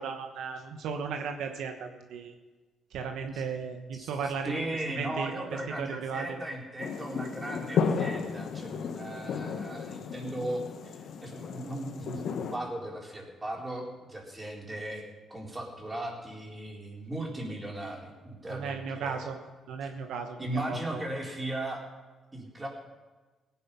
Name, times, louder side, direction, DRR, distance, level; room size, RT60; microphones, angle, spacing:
voice 1, 0.0-2.3 2.9-4.5 4.9-6.4 18.5-19.4 19.7-21.0, right 6 dB, 80° right, 5 dB, 1.2 m, -35 dB
voice 2, 3.9-15.0 15.3-19.2 20.4-21.8 22.3-22.7, right 1 dB, 20° right, -1 dB, 4.1 m, -37 dB
sound 1, 6.8-12.6, left 6 dB, 70° left, 1.2 m, -33 dB
17.5 x 9.9 x 5.5 m, 1.2 s
cardioid pair, 90°, 0 cm